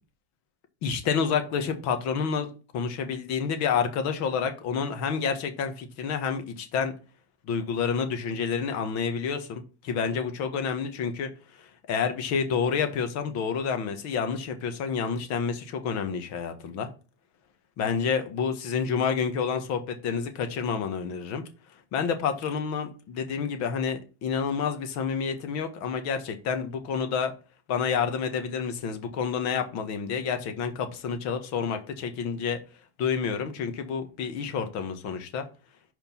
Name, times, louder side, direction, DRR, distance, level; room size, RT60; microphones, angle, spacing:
voice 1, 0.8-2.5 2.7-6.9 7.5-11.3 11.6-16.9 17.8-21.4 21.9-27.3 27.7-32.6 33.0-35.4, left 6 dB, 45° left, 1.5 m, -29 dB
5.1 x 4.7 x 5.7 m
supercardioid pair, 120°, 37 cm